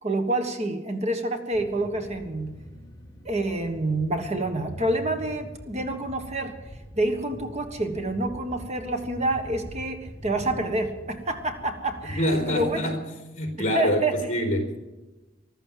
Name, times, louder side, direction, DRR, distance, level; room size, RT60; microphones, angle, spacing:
voice 1, 0.0-2.5 3.2-6.5 7.0-12.8 13.7-14.1, right 2 dB, 35° right, 6 dB, 1.4 m, -28 dB
sound 1, 1.5-12.8, equal, 20° left, 2.0 m, -44 dB
voice 2, 12.1-13.0 13.3-14.8, equal, 40° left, 3 dB, 3.8 m, -25 dB
14.5 x 13.0 x 7.5 m, 1.1 s
head